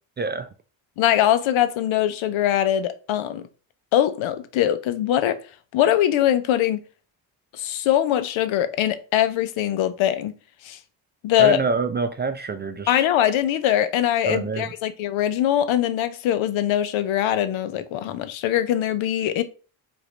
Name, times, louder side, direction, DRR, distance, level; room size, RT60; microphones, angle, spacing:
voice 1, 0.2-0.5 11.4-13.0 14.3-14.7, right 4 dB, 25° right, 0.3 m, -26 dB
voice 2, 1.0-3.4 3.9-5.4 5.7-6.8 7.5-10.3 10.6-10.8 11.2-11.6 12.9-19.4, left 11 dB, 70° left, 0.7 m, -22 dB
4.8 x 2.7 x 3.2 m
cardioid pair, 80°, 49 cm